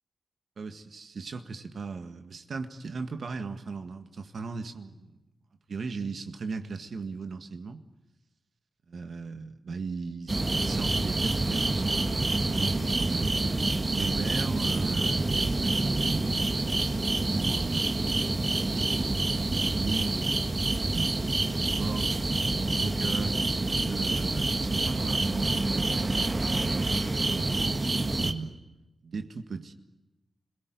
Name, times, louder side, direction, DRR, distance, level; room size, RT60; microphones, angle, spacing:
voice 1, 0.6-5.2 5.7-7.8 8.9-13.4 13.9-16.8 17.1-17.9 18.5-20.4 20.8-22.4 22.8-23.4 23.8-28.6 29.0-29.7, right 4 dB, 70° right, 8 dB, 1.8 m, -38 dB
sound 1, 10.3-28.3, right 2 dB, 35° right, 1.7 m, -27 dB
26.0 x 17.5 x 9.7 m, 0.99 s
cardioid pair, 70°, 0 cm